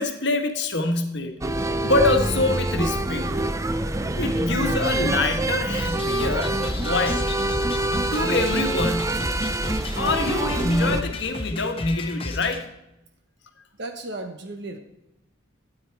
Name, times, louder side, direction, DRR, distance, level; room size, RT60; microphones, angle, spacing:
voice 1, 0.0-3.4 4.2-7.3 8.1-9.2 10.0-12.7, left 2 dB, 60° left, 6 dB, 1.3 m, -25 dB
sound 1, 1.4-11.0, right 1 dB, 15° right, 0.5 m, -25 dB
sound 2, 5.8-12.6, left 2 dB, 25° left, 1.1 m, -34 dB
voice 2, 13.8-14.8, right 2 dB, 55° right, 5 dB, 0.9 m, -34 dB
12.5 x 9.1 x 4.6 m, 0.91 s
head